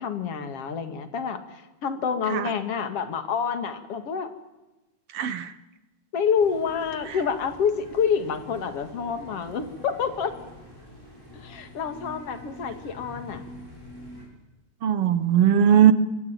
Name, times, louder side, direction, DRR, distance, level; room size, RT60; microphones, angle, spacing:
voice 1, 0.0-4.3 6.1-10.3 11.3-13.4, left 6 dB, 45° left, 9 dB, 2.8 m, -28 dB
voice 2, 5.1-5.5 14.8-15.9, right 9 dB, 65° right, 13 dB, 1.5 m, -19 dB
sound 1, 6.3-14.3, equal, 5° left, 7.8 m, -45 dB
25.5 x 24.0 x 9.0 m, 1.1 s
omnidirectional pair, 3.9 m